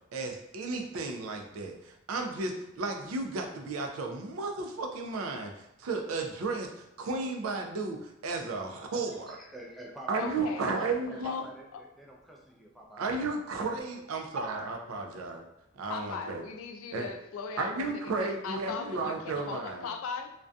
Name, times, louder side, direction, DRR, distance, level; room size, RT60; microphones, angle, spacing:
voice 1, 0.1-9.4 10.1-11.4 13.0-15.4 15.7-16.4 16.9-17.1 17.6-19.9, right 3 dB, 80° right, 3 dB, 0.4 m, -34 dB
voice 2, 9.0-10.3 10.8-13.0 15.1-15.2, right 1 dB, ahead, -2 dB, 0.4 m, -47 dB
voice 3, 10.2-10.7 11.2-11.4 11.7-11.8 15.9-20.3, left 5 dB, 75° left, 6 dB, 0.3 m, -38 dB
2.5 x 2.2 x 2.3 m, 0.86 s
head